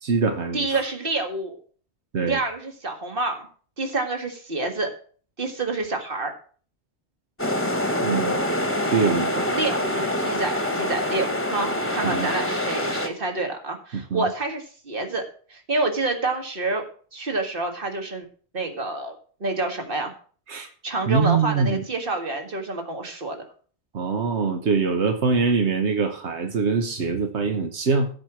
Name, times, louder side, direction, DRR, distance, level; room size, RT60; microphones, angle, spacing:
voice 1, 0.0-0.7 2.1-2.4 8.0-8.4 8.9-9.5 12.0-12.3 13.9-14.3 20.5-20.7 21.1-21.8 23.9-28.1, right 5 dB, 90° right, 5 dB, 1.4 m, -23 dB
voice 2, 0.5-1.6 2.3-3.5 3.8-4.9 5.4-6.3 9.5-15.2 15.5-16.8 17.1-18.3 18.5-20.1 20.6-23.4, right 2 dB, 55° right, 4 dB, 2.1 m, -28 dB
sound 1, 7.4-13.1, left 1 dB, 10° left, 1.2 m, -25 dB
15.0 x 5.1 x 6.0 m, 0.44 s
omnidirectional pair, 1.1 m